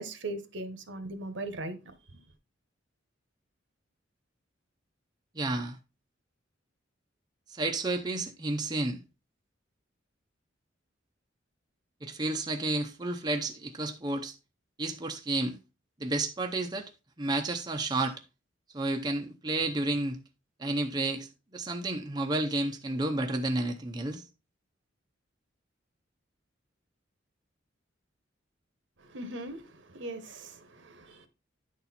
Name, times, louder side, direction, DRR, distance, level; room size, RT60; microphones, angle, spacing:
voice 1, 0.0-1.8 2.1-2.2 29.0-31.3, right 2 dB, 65° right, 1.0 m, -39 dB
voice 2, 5.3-5.8 7.5-9.0 12.0-14.4 14.8-15.6 16.0-16.9 17.2-18.2 18.7-20.2 20.6-24.2, right 2 dB, 20° right, 0.7 m, -31 dB
10.0 x 4.3 x 4.1 m
head